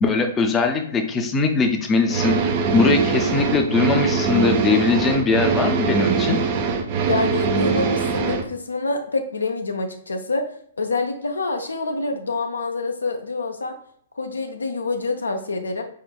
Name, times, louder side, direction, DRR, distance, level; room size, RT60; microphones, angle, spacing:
voice 1, 0.0-6.4, left 4 dB, 20° left, 5 dB, 0.5 m, -21 dB
sound 1, 2.1-8.4, right 5 dB, 40° right, 0.5 m, -22 dB
voice 2, 7.0-10.5 10.8-13.7 14.2-15.8, left 3 dB, 80° left, 5 dB, 0.5 m, -26 dB
4.0 x 3.8 x 2.2 m, 0.63 s
figure-of-eight pair, 115°, 0 cm